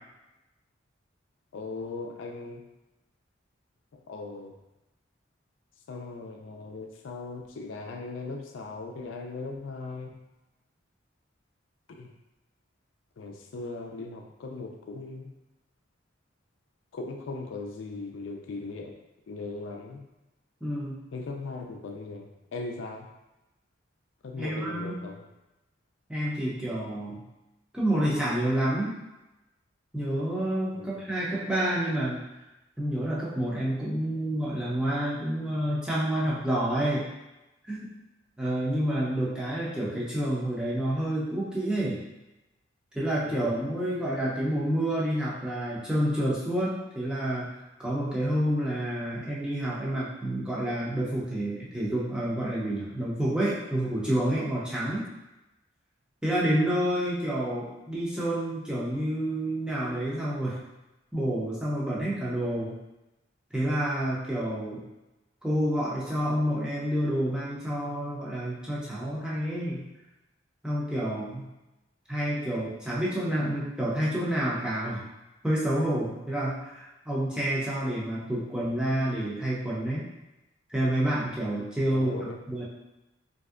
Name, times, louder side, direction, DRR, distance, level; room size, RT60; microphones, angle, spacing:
voice 1, 1.5-2.6 3.9-4.5 5.9-10.2 11.9-12.1 13.2-15.3 16.9-18.9 19.3-20.1 21.1-23.1 24.2-25.3 30.7-31.1 43.2-43.5 54.8-54.9 81.9-82.4, left 3 dB, 80° left, 2 dB, 0.4 m, -39 dB
voice 2, 20.6-21.0 24.4-25.0 26.1-27.2 27.7-28.9 29.9-32.2 32.8-37.0 37.6-37.9 38.4-42.0 42.9-47.5 47.8-55.1 56.2-60.6 61.1-62.7 63.5-64.8 65.4-69.8 70.6-71.4 72.1-75.0 75.4-80.1 80.7-82.1 82.5-82.6, right 1 dB, 5° right, -7 dB, 0.5 m, -28 dB
3.2 x 2.6 x 2.4 m, 0.98 s
head